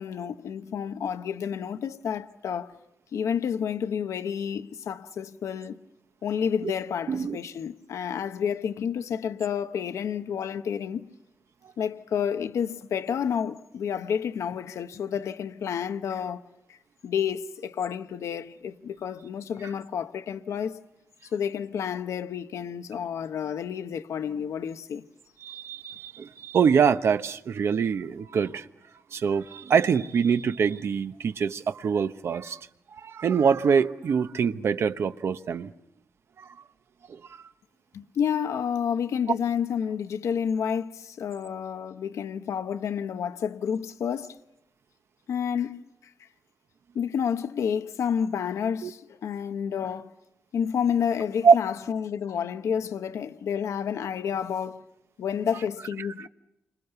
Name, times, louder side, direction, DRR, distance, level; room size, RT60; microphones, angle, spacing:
voice 1, 0.0-2.7 3.1-5.8 6.2-11.1 11.8-16.4 16.7-16.8 17.0-20.8 21.3-25.0 37.9-44.4 45.3-45.8 46.9-50.1 50.5-54.8 55.2-56.3, left 7 dB, 80° left, 1.0 m, -30 dB
voice 2, 7.1-7.4 25.4-28.6 29.1-32.6 33.0-35.7 48.8-48.9 51.4-51.5, right 6 dB, 60° right, 1.0 m, -24 dB
29.5 x 26.0 x 6.9 m
wide cardioid pair, 140°, 5 cm